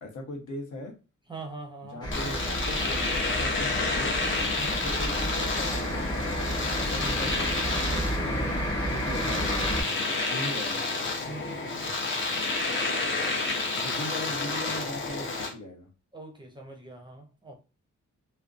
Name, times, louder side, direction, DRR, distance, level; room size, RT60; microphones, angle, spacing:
voice 1, 0.0-0.9 1.9-4.1 4.6-7.5 7.8-8.5 8.9-10.9 13.1-13.2 13.7-15.9, left 1 dB, 75° left, 0.9 m, -39 dB
voice 2, 1.3-2.0 4.5-4.8 10.4-10.5 11.2-11.9 16.1-17.6, right 3 dB, 15° right, 0.5 m, -42 dB
sound 1, 2.0-9.8, equal, 15° left, 0.9 m, -31 dB
Domestic sounds home sounds, 2.1-15.5, left 3 dB, 40° left, 0.6 m, -30 dB
2.5 x 2.1 x 2.4 m
wide cardioid pair, 150°, 31 cm